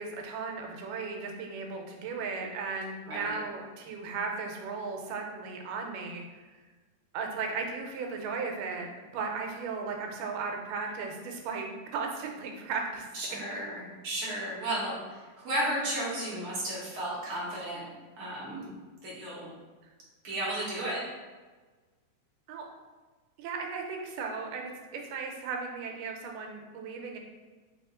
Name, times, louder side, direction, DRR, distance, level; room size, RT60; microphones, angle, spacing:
voice 1, 0.0-6.4 7.1-13.1 22.5-22.7 23.4-27.2, right 4 dB, 90° right, 2 dB, 2.2 m, -36 dB
voice 2, 13.1-17.8 18.2-18.6 19.0-19.5 20.2-21.0, right 1 dB, 55° right, -7 dB, 1.6 m, -33 dB
4.8 x 2.7 x 3.6 m, 1.3 s
omnidirectional pair, 3.7 m